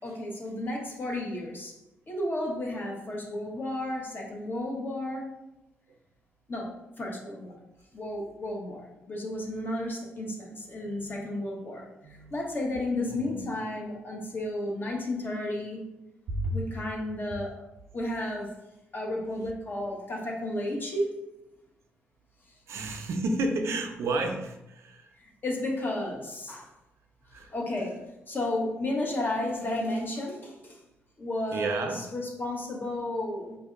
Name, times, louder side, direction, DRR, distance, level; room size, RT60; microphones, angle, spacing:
voice 1, 0.0-1.7 2.1-5.3 6.5-6.7 7.0-7.5 7.9-15.8 16.5-17.5 17.9-18.5 18.9-21.2 25.2-26.7 27.5-28.0 28.3-30.8 31.2-33.6, left 1 dB, 45° left, -2 dB, 1.0 m, -33 dB
voice 2, 10.9-11.2 12.0-12.3 13.1-13.5 16.3-16.6 22.7-25.1 27.3-27.5 31.5-32.0, right 2 dB, 70° right, 4 dB, 0.5 m, -31 dB
4.4 x 2.6 x 2.5 m, 0.92 s
supercardioid pair, 55°, 5 cm